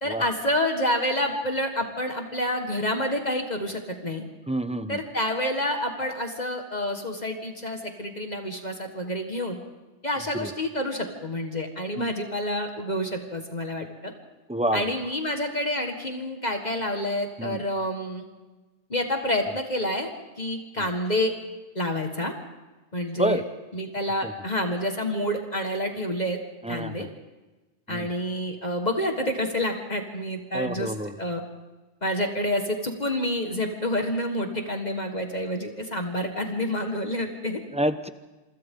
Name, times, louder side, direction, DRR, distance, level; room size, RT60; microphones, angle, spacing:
voice 1, 0.0-4.3 4.9-9.6 10.0-14.1 14.7-18.2 18.9-20.1 20.4-21.3 21.8-22.3 22.9-23.4 23.7-26.4 26.7-27.1 27.9-31.4 32.0-37.6, left 1 dB, 40° left, 4 dB, 1.9 m, -28 dB
voice 2, 4.5-5.0 10.4-10.5 12.0-12.1 14.5-14.8 17.4-17.6 20.8-20.9 23.2-23.4 24.2-24.3 26.6-27.1 27.9-28.1 30.5-31.1 37.7-38.1, right 1 dB, 5° right, 9 dB, 0.9 m, -28 dB
27.5 x 24.5 x 3.8 m, 1.2 s
omnidirectional pair, 1.2 m